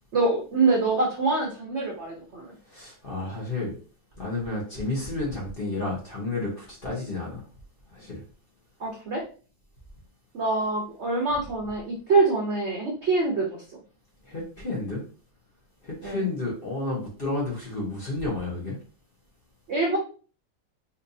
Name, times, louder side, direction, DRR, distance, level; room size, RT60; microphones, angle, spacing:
voice 1, 0.1-2.5 8.8-9.2 10.3-13.6 16.0-16.3 19.7-20.0, right 3 dB, 85° right, 0 dB, 0.6 m, -25 dB
voice 2, 2.7-3.8 4.2-7.4 7.9-8.2 14.2-15.0 15.8-18.8, left 2 dB, 40° left, -4 dB, 0.9 m, -31 dB
4.2 x 2.7 x 2.6 m, 0.40 s
omnidirectional pair, 2.2 m